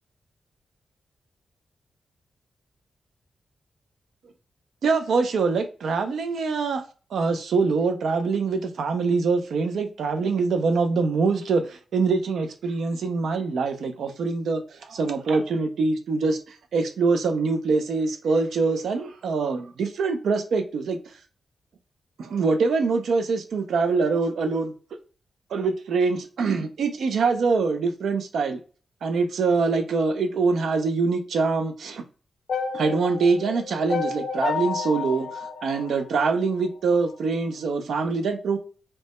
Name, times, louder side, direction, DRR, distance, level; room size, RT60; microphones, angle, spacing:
voice 1, 4.8-6.8 7.1-21.0 22.2-24.7 25.5-28.6 29.0-32.0 32.7-38.6, right 4 dB, 80° right, 0.3 m, -24 dB
sound 1, 32.5-36.7, left 5 dB, 80° left, 0.4 m, -30 dB
2.1 x 2.1 x 2.8 m
wide cardioid pair, 130°, 0 cm